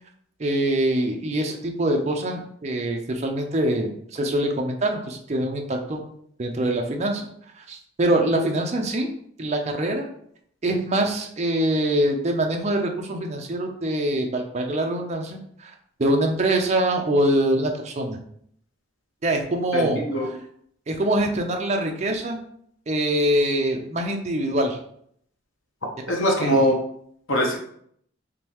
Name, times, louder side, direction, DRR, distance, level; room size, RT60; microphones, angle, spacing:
voice 1, 0.4-6.1 6.4-7.3 7.6-9.1 9.4-10.1 10.6-15.7 16.0-18.2 19.2-20.0 20.9-22.4 22.9-24.8 26.1-26.6, right 1 dB, 35° right, 3 dB, 0.5 m, -24 dB
voice 2, 19.7-20.3 26.1-26.8 27.3-27.6, equal, 80° left, 0 dB, 0.9 m, -21 dB
3.7 x 3.1 x 3.0 m, 0.66 s
head